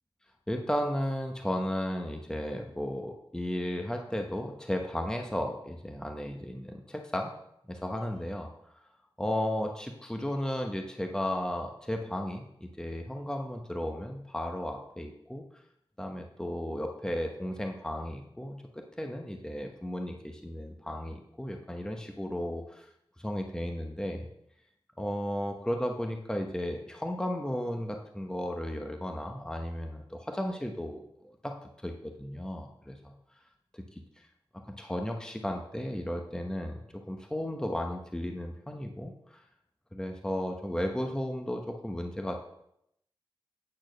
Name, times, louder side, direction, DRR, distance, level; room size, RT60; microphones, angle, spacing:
voice 1, 0.5-7.3 7.7-8.5 9.2-15.4 16.0-22.9 23.2-24.3 25.0-31.1 31.4-31.6 31.8-33.1 33.7-33.8 34.7-39.4 39.9-42.4, left 1 dB, 10° left, 3 dB, 0.9 m, -34 dB
8.6 x 4.4 x 6.3 m, 0.77 s
wide cardioid pair, 65°, 9 cm